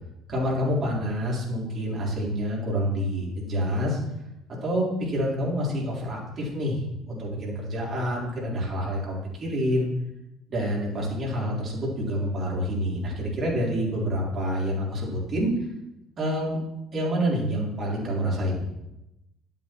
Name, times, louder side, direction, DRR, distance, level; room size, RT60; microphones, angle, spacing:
voice 1, 0.3-4.0 4.6-6.8 7.1-9.9 10.5-15.5 16.2-16.6 16.9-18.7, equal, 40° right, -4 dB, 3.8 m, -27 dB
12.0 x 7.4 x 3.1 m, 0.91 s
figure-of-eight pair, 55°, 0 cm